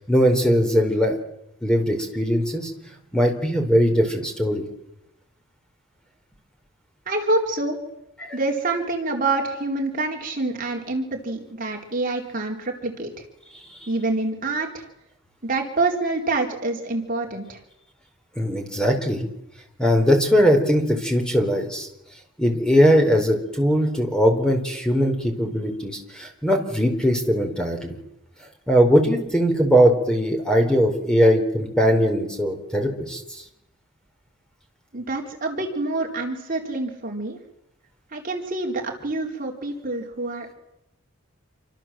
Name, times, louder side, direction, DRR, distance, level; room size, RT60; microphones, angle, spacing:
voice 1, 0.1-1.2 1.6-2.7 3.1-4.6 8.2-8.4 18.4-19.3 19.8-21.9 22.4-28.0 28.7-33.4, equal, 5° left, 3 dB, 4.4 m, -20 dB
voice 2, 7.1-7.8 8.3-13.1 13.9-14.8 15.4-17.6 34.9-37.4 38.1-40.5, right 2 dB, 40° right, 1 dB, 4.0 m, -26 dB
28.0 x 25.0 x 7.6 m, 0.85 s
head